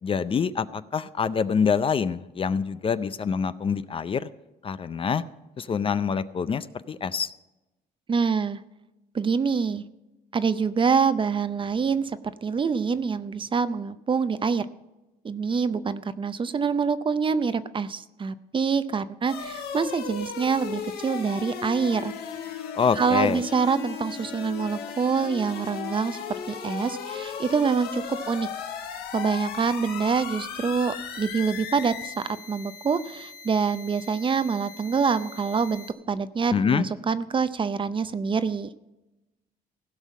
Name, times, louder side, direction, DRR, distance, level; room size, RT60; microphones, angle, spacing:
voice 1, 0.0-4.3 4.6-5.2 5.6-7.3 22.8-23.4 36.5-36.9, left 6 dB, 35° left, 14 dB, 0.5 m, -25 dB
voice 2, 8.1-8.6 9.1-9.8 10.3-14.7 15.2-22.1 23.0-26.2 26.5-28.5 29.1-32.1 32.5-38.7, right 5 dB, 30° right, 13 dB, 0.6 m, -26 dB
sound 1, 19.3-35.9, left 7 dB, 80° left, 1.4 m, -37 dB
16.0 x 5.6 x 7.3 m, 1.0 s
cardioid pair, 95°, 16 cm